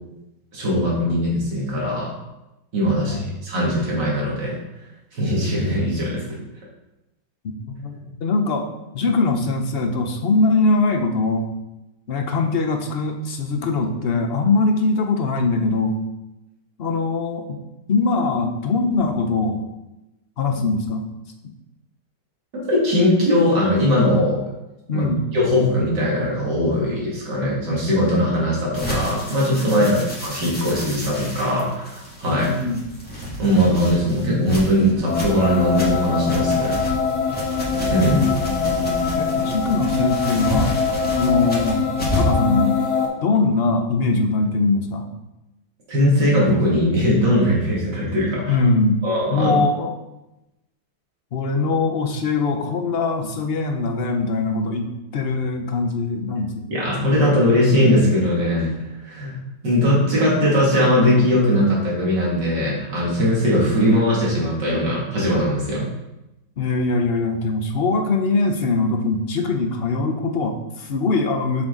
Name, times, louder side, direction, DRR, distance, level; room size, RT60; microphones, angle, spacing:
voice 1, 0.5-2.1 2.7-4.6 5.1-6.4 22.7-24.4 24.9-32.5 33.4-36.8 37.9-38.2 45.9-48.6 49.0-49.5 56.7-58.7 59.0-59.3 59.6-65.9, equal, 70° right, -5 dB, 3.1 m, -20 dB
voice 2, 7.4-8.6 8.9-11.5 12.1-16.0 16.8-17.6 17.9-19.6 20.4-21.1 24.9-25.2 29.8-30.0 32.3-32.8 38.0-38.3 39.2-40.8 41.2-41.8 42.1-42.8 43.2-45.1 48.5-49.0 49.3-49.9 51.3-56.7 66.6-71.6, left 3 dB, 50° left, 5 dB, 0.7 m, -22 dB
sound 1, 28.7-42.4, equal, 5° left, 2.1 m, -30 dB
sound 2, 35.1-43.1, left 5 dB, 65° left, 1.8 m, -23 dB
7.4 x 6.3 x 3.9 m, 0.95 s
omnidirectional pair, 1.9 m